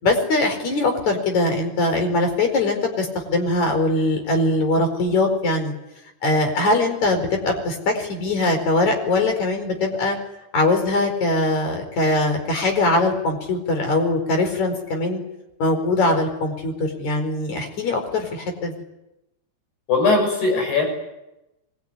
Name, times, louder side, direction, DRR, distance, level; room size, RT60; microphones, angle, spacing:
voice 1, 0.0-5.7 6.2-10.2 10.5-15.2 15.6-18.7, left 2 dB, 45° left, 5 dB, 5.9 m, -21 dB
voice 2, 19.9-20.9, left 3 dB, 80° left, 3 dB, 8.7 m, -19 dB
24.5 x 23.0 x 9.8 m, 0.92 s
omnidirectional pair, 4.6 m